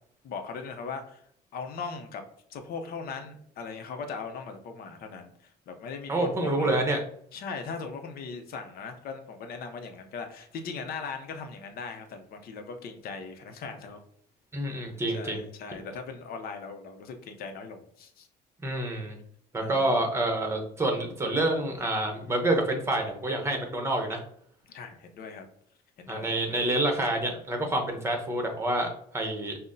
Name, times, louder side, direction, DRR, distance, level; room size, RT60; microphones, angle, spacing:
voice 1, 0.2-1.2 1.5-2.2 2.5-6.9 7.3-14.0 15.1-18.3 19.6-20.0 24.7-25.5 26.0-26.4, left 5 dB, 65° left, 6 dB, 0.6 m, -39 dB
voice 2, 6.1-7.0 14.5-15.4 18.6-19.2 19.5-24.2 26.1-29.6, right 1 dB, 15° right, 3 dB, 0.8 m, -28 dB
5.5 x 2.0 x 2.6 m, 0.63 s
cardioid pair, 110°, 17 cm